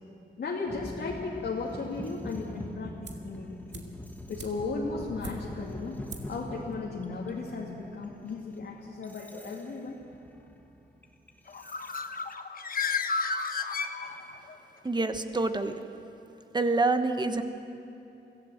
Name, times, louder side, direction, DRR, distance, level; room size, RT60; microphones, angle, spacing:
voice 1, 0.4-3.9 4.3-6.0 6.3-10.0, left 4 dB, 70° left, -4 dB, 2.4 m, -36 dB
sound 1, 0.7-12.3, left 1 dB, 10° left, 1.5 m, -43 dB
sound 2, 3.0-3.4 3.7-5.7 6.1-6.4 6.7-6.8, right 4 dB, 65° right, 2.0 m, -45 dB
Bird, 11.5-14.5, left 5 dB, 50° left, 1.1 m, -32 dB
voice 2, 14.8-15.7 16.5-17.4, right 3 dB, 25° right, 8 dB, 1.2 m, -26 dB
25.0 x 16.5 x 7.9 m, 2.8 s
wide cardioid pair, 130°, 19 cm